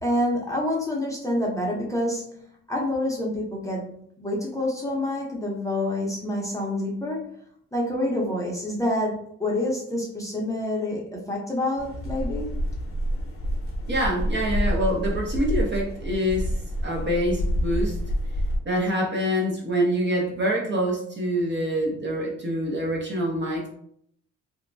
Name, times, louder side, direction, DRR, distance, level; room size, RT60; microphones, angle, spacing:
voice 1, 0.0-7.3 7.7-12.6, left 1 dB, 10° left, -3 dB, 0.7 m, -27 dB
sound 1, 11.8-18.6, equal, 45° left, 0.7 m, -28 dB
voice 2, 13.9-16.5 16.8-18.0 18.6-23.7, equal, 35° right, -1 dB, 0.8 m, -25 dB
2.8 x 2.2 x 2.6 m, 0.67 s
cardioid pair, 90°, 30 cm